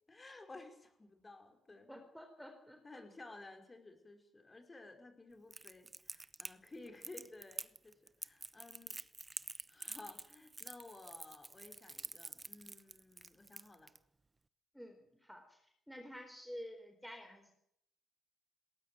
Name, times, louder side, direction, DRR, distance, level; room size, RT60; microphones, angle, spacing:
voice 1, 0.1-1.9 2.8-9.0 9.7-13.9, left 2 dB, 25° left, 6 dB, 5.3 m, -55 dB
voice 2, 1.9-3.0 6.8-6.9 14.7-17.5, equal, ahead, 5 dB, 4.1 m, -51 dB
Crackle, 5.5-14.0, right 3 dB, 20° right, 0.9 m, -47 dB
19.5 x 18.0 x 9.3 m, 0.75 s
cardioid pair, 90°, 0 cm